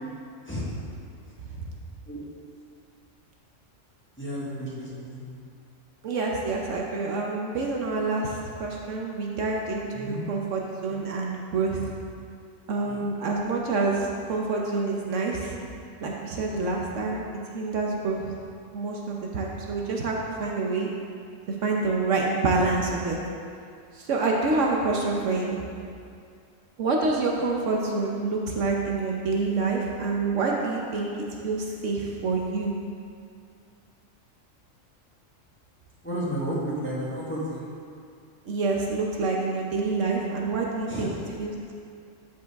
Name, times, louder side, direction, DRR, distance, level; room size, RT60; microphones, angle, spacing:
voice 1, 4.2-5.2 9.9-10.2 12.9-13.0 36.0-37.7 40.9-41.2, equal, 10° left, -8 dB, 1.5 m, -32 dB
voice 2, 6.0-11.9 12.7-15.6 16.0-17.2 17.5-18.3 18.7-20.9 21.5-23.2 23.9-25.6 26.8-31.1 31.4-32.7 38.5-41.1 41.4-41.7, right 3 dB, 70° right, -1 dB, 1.1 m, -27 dB
12.0 x 4.8 x 3.5 m, 2.3 s
omnidirectional pair, 1.4 m